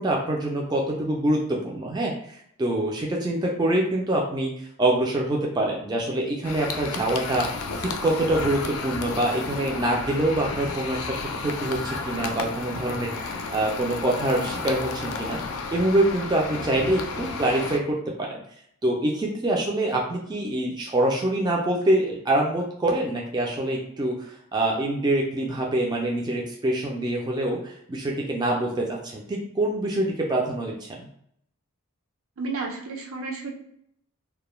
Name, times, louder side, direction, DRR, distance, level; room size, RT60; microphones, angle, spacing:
voice 1, 0.0-7.5 7.8-11.2 11.4-13.1 13.5-15.4 15.7-18.4 18.8-31.1, right 1 dB, 20° right, -1 dB, 0.3 m, -25 dB
sound 1, 6.4-17.8, left 4 dB, 80° left, 0.4 m, -32 dB
voice 2, 32.4-33.5, right 3 dB, 75° right, 2 dB, 0.5 m, -32 dB
2.2 x 2.1 x 3.0 m, 0.70 s
head